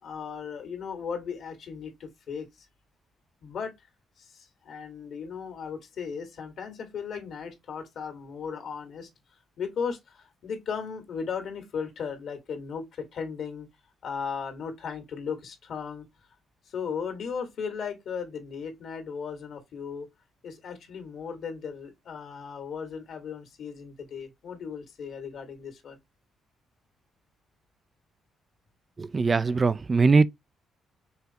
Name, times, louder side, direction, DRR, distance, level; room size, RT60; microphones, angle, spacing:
voice 1, 0.0-2.7 3.4-3.9 4.2-9.1 9.6-13.7 14.0-16.1 16.7-20.1 20.4-26.0, left 6 dB, 65° left, 1.8 m, -36 dB
voice 2, 29.0-30.3, right 4 dB, 30° right, 0.4 m, -21 dB
5.6 x 3.2 x 2.9 m
cardioid pair, 90°, 0 cm